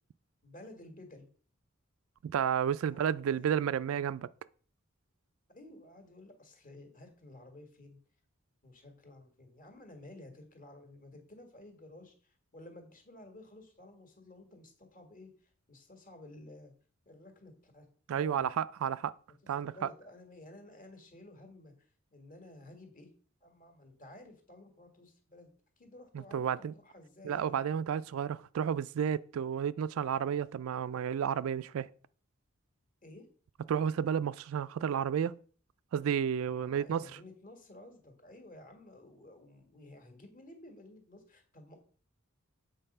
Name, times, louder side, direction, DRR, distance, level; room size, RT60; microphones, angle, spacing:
voice 1, 0.4-1.3 2.8-3.6 5.5-8.0 8.6-16.7 17.0-18.5 19.6-23.1 23.4-27.6 33.0-33.3 36.5-41.8, left 1 dB, 40° left, 1.7 m, -53 dB
voice 2, 2.2-4.3 18.1-19.1 19.5-19.7 26.3-26.7 27.2-31.9 33.7-35.4 35.9-37.0, right 8 dB, 70° right, 0.3 m, -31 dB
7.8 x 4.0 x 5.4 m
head